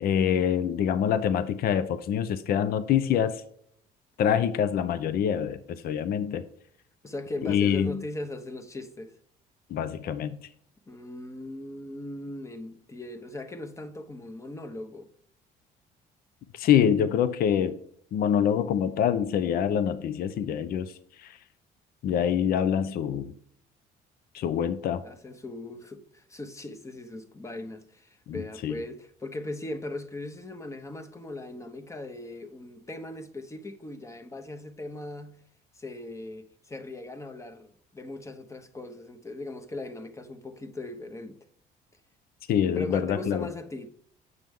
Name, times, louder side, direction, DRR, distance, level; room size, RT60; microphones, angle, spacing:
voice 1, 0.0-3.4 4.2-6.4 7.4-8.0 9.7-10.4 16.5-17.8 18.1-20.9 21.2-21.4 22.0-23.3 24.3-25.0 28.3-28.8 42.5-43.5, left 8 dB, 60° left, 0.6 m, -25 dB
voice 2, 7.0-9.1 10.9-15.1 25.0-35.4 35.7-41.4 42.8-43.9, left 2 dB, 15° left, 0.9 m, -39 dB
8.0 x 5.9 x 3.6 m
cardioid pair, 110°, 17 cm